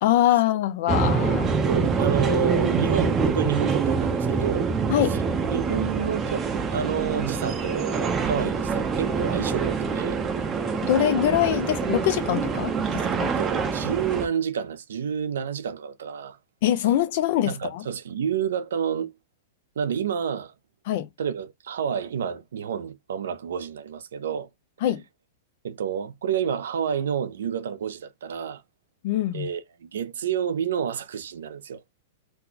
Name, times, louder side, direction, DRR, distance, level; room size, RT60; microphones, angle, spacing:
voice 1, 0.0-1.5 4.9-5.2 10.8-13.4 16.6-17.8 20.9-21.1 24.8-25.0 29.0-29.5, left 12 dB, 55° left, 0.7 m, -23 dB
sound 1, 0.9-14.3, right 5 dB, 20° right, 0.7 m, -25 dB
voice 2, 1.7-4.7 5.1-5.2 5.5-10.2 12.8-16.4 17.4-19.1 19.8-20.5 21.2-24.5 25.6-28.6 29.3-31.8, right 7 dB, 85° right, 0.6 m, -29 dB
2.8 x 2.3 x 3.9 m
hypercardioid pair, 145°, 0 cm